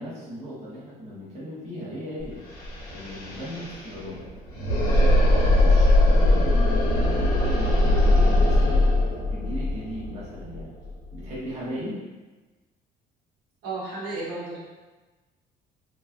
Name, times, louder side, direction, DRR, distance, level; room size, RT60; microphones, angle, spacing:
voice 1, 0.0-2.4 2.9-4.2 4.8-8.8 9.3-10.7 11.1-12.0, equal, 40° right, -9 dB, 1.0 m, -37 dB
sound 1, 2.2-2.3 2.5-11.3, left 1 dB, 70° left, 0.9 m, -21 dB
voice 2, 13.6-14.6, right 3 dB, 80° right, -8 dB, 1.3 m, -33 dB
3.0 x 2.3 x 2.3 m, 1.2 s
cardioid pair, 110°, 17 cm